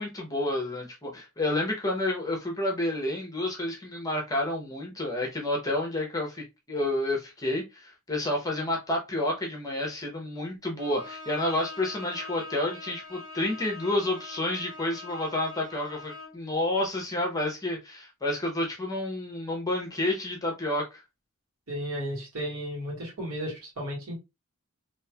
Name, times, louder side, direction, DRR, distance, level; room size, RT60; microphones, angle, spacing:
voice 1, 0.0-21.0, left 1 dB, 15° left, 0.7 m, -30 dB
Bowed string instrument, 10.8-16.5, left 3 dB, 40° right, 1.5 m, -43 dB
voice 2, 21.7-24.1, equal, 85° right, 1.6 m, -34 dB
3.0 x 2.8 x 2.2 m
head